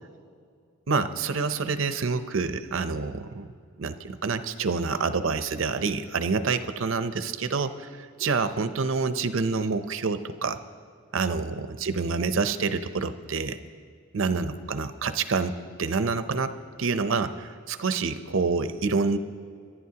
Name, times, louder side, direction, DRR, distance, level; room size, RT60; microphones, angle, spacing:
voice 1, 0.9-3.5 3.8-10.6 11.1-13.6 14.1-16.5 16.8-19.2, right 4 dB, 75° right, 11 dB, 0.6 m, -27 dB
24.5 x 11.5 x 2.9 m, 2.2 s
head